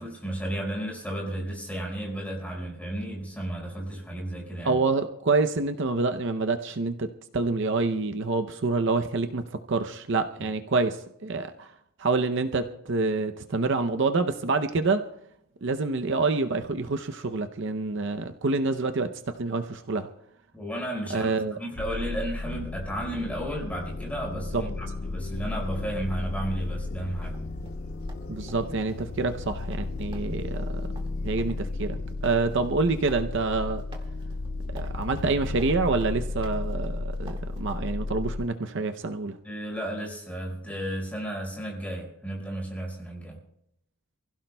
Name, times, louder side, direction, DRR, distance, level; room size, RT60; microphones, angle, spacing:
voice 1, 0.0-4.8 20.5-27.4 39.4-43.4, right 1 dB, 5° left, -1 dB, 5.0 m, -33 dB
voice 2, 4.6-11.7 12.0-15.1 15.6-20.1 21.1-21.6 24.5-24.6 28.3-30.9 31.2-33.8 34.7-39.4, right 3 dB, 55° right, 7 dB, 0.6 m, -27 dB
sound 1, 21.8-38.5, left 3 dB, 45° left, 0.5 m, -34 dB
sound 2, 24.5-31.8, left 1 dB, 70° left, 1.6 m, -49 dB
sound 3, 27.2-37.8, right 2 dB, 25° right, 1.9 m, -52 dB
28.0 x 16.0 x 2.2 m, 0.77 s
head